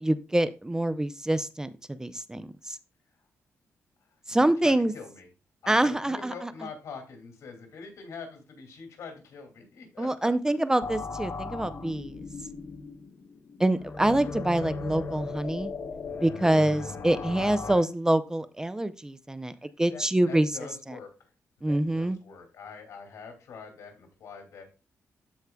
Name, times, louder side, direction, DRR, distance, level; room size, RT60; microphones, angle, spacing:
voice 1, 0.0-2.8 4.3-4.9 5.7-6.5 10.0-12.2 13.6-15.7 16.2-19.5 19.8-20.5 20.9-21.0 21.6-22.2, right 1 dB, 10° right, 13 dB, 0.4 m, -26 dB
voice 2, 4.3-5.3 5.6-10.3 17.3-17.8 19.6-21.1 21.6-24.7, left 5 dB, 80° left, 3 dB, 2.5 m, -44 dB
sound 1, 10.8-17.8, left 4 dB, 50° left, 0.9 m, -37 dB
13.5 x 4.7 x 2.3 m, 0.32 s
cardioid pair, 120°, 5 cm